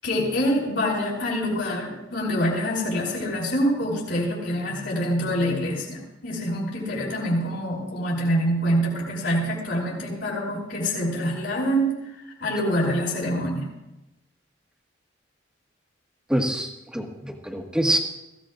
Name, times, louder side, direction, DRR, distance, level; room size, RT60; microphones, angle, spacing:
voice 1, 0.0-12.1 12.4-13.7, equal, 70° left, -6 dB, 5.8 m, -25 dB
voice 2, 16.3-18.0, right 1 dB, 5° right, 1 dB, 1.7 m, -25 dB
22.5 x 16.0 x 2.6 m, 0.97 s
head